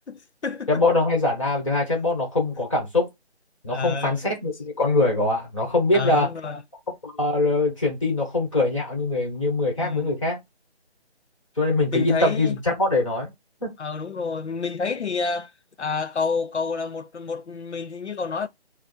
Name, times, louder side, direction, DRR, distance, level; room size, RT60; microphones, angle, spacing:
voice 1, 0.1-1.0 3.7-4.2 5.9-6.6 9.8-10.2 11.9-12.6 13.8-15.5 15.8-18.5, left 4 dB, 85° left, 0.8 m, -29 dB
voice 2, 0.7-3.1 3.6-6.3 7.0-10.4 11.6-13.3 13.6-13.7, left 2 dB, 30° left, 1.5 m, -23 dB
4.9 x 2.2 x 4.4 m
figure-of-eight pair, 170°, 33 cm